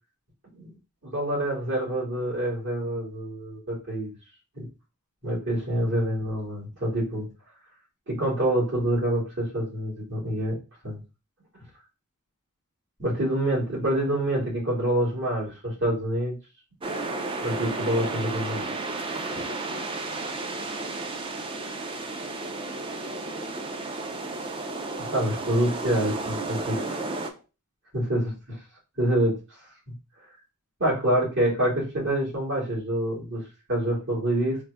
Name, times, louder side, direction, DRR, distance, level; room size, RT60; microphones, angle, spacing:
voice 1, 1.0-4.1 4.5-4.7 5.2-7.3 8.1-10.6 10.8-11.0 13.0-16.4 17.4-18.7 21.6-21.7 25.0-26.8 27.9-28.6 29.0-29.4 30.8-33.4 33.7-34.6, right 1 dB, 55° right, -5 dB, 2.2 m, -26 dB
sound 1, 16.8-27.3, right 2 dB, 25° right, 0.4 m, -33 dB
3.7 x 2.6 x 3.3 m, 0.30 s
head